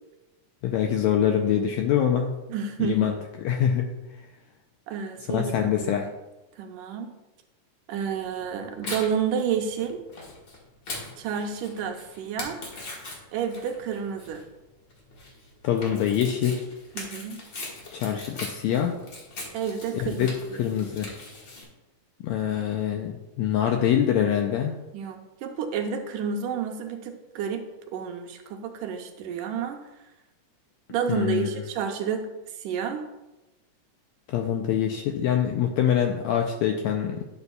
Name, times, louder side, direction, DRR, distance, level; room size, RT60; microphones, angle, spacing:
voice 1, 0.6-2.4 2.8-3.2 3.4-3.9 5.3-6.1 15.6-16.6 17.9-19.0 19.9-20.3 20.6-21.1 22.2-24.8 31.1-31.6 34.3-37.2, left 9 dB, 85° left, 4 dB, 1.6 m, -24 dB
voice 2, 2.5-3.2 4.9-6.0 6.6-7.1 7.9-10.0 11.2-12.6 13.3-14.4 17.0-17.4 19.5-20.6 24.9-27.6 27.9-29.8 30.9-32.3 32.6-33.1, right 7 dB, 80° right, 5 dB, 2.2 m, -30 dB
Tearing, 8.1-21.6, left 2 dB, 45° left, 1.7 m, -41 dB
10.5 x 7.0 x 2.3 m, 1.0 s
omnidirectional pair, 3.7 m